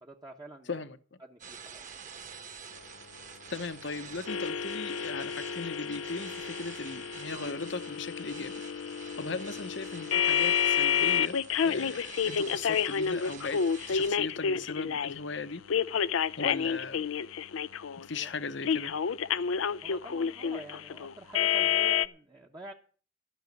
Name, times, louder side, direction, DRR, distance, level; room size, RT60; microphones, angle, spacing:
voice 1, 0.0-0.8 1.2-1.9 18.1-18.3 19.8-22.7, right 1 dB, 20° right, 1.0 m, -47 dB
voice 2, 0.7-1.2 3.5-8.6 9.2-11.4 11.6-15.6 16.4-17.1 18.0-18.9, left 4 dB, 60° left, 0.9 m, -38 dB
sound 1, 1.4-14.1, right 6 dB, 40° right, 1.5 m, -48 dB
sound 2, 4.3-15.2 15.7-18.1 18.6-22.1, left 7 dB, 80° left, 0.5 m, -30 dB
13.5 x 6.3 x 9.3 m
head